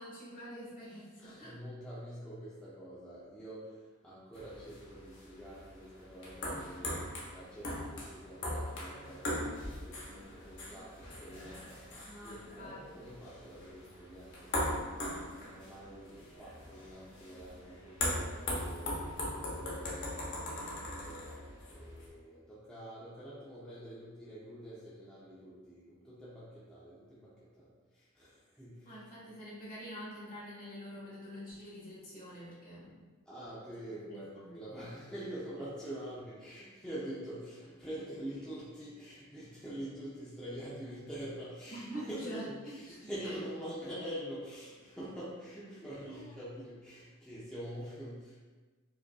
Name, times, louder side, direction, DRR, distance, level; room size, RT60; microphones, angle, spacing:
voice 1, 0.0-1.6 12.0-13.1 28.8-33.0 34.1-34.5 41.7-43.3 46.1-46.3, equal, 40° left, -7 dB, 1.3 m, -46 dB
voice 2, 1.2-15.1 15.4-29.0 33.3-48.4, equal, 5° left, -10 dB, 0.5 m, -46 dB
sound 1, 4.3-22.1, left 1 dB, 60° left, 0.9 m, -40 dB
4.8 x 2.5 x 2.3 m, 1.3 s
head